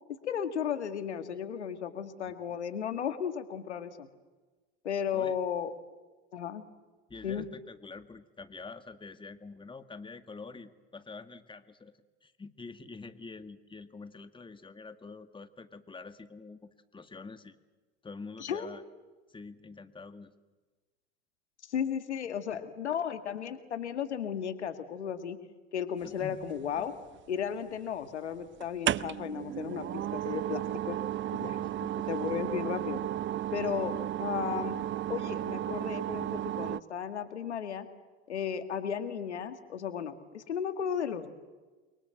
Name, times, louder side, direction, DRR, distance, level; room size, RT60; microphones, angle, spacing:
voice 1, 0.2-4.1 4.8-5.7 6.3-6.6 7.2-7.4 18.4-18.7 21.7-25.4 25.7-26.9 27.3-31.0 31.3-31.6 32.1-33.0 33.5-34.8 35.1-37.9 38.3-41.3, left 8 dB, 85° left, 9 dB, 2.0 m, -34 dB
voice 2, 7.1-11.9 12.2-17.6 18.0-18.8 19.3-20.3 26.0-26.4 31.5-32.1, left 4 dB, 15° left, 10 dB, 1.8 m, -46 dB
sound 1, 26.4-27.2 28.6-36.8, right 12 dB, 35° right, 0.8 m, -34 dB
29.0 x 24.0 x 7.9 m, 1.3 s
hypercardioid pair, 75°, 33 cm